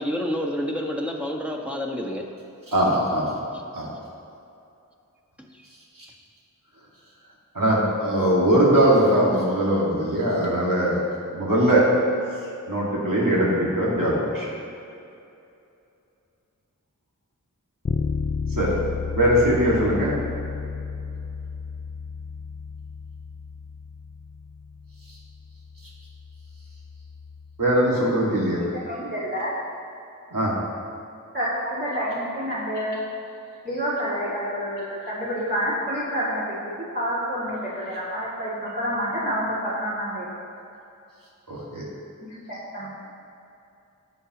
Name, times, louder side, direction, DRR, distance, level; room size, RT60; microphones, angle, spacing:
voice 1, 0.0-2.2 3.5-3.6 5.5-5.6 6.0-6.1, equal, 5° right, -1 dB, 1.5 m, -29 dB
voice 2, 2.7-3.4 3.7-3.9 5.9-6.1 7.5-11.0 11.3-11.9 12.3-14.5 18.6-18.7 19.1-20.2 25.1-25.2 27.6-28.6 30.3-30.6 41.5-41.8, right 1 dB, 80° right, -6 dB, 2.2 m, -21 dB
Bass guitar, 17.9-27.7, left 5 dB, 25° left, 0.4 m, -33 dB
voice 3, 28.5-29.5 31.3-33.0 33.6-40.3 42.2-42.9, equal, 30° right, -11 dB, 2.5 m, -28 dB
18.5 x 7.2 x 3.0 m, 2.7 s
wide cardioid pair, 50°, 33 cm